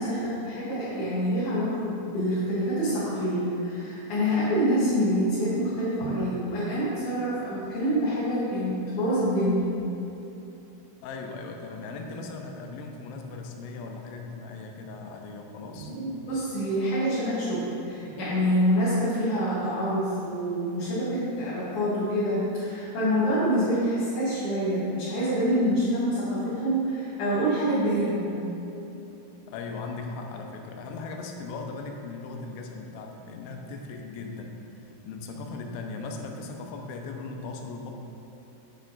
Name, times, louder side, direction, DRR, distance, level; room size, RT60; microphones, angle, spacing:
voice 1, 0.0-9.7 15.7-28.3, equal, 60° left, -12 dB, 2.3 m, -26 dB
voice 2, 11.0-16.0 29.5-37.9, left 3 dB, 85° left, 3 dB, 3.1 m, -38 dB
8.1 x 6.5 x 3.9 m, 2.9 s
omnidirectional pair, 5.2 m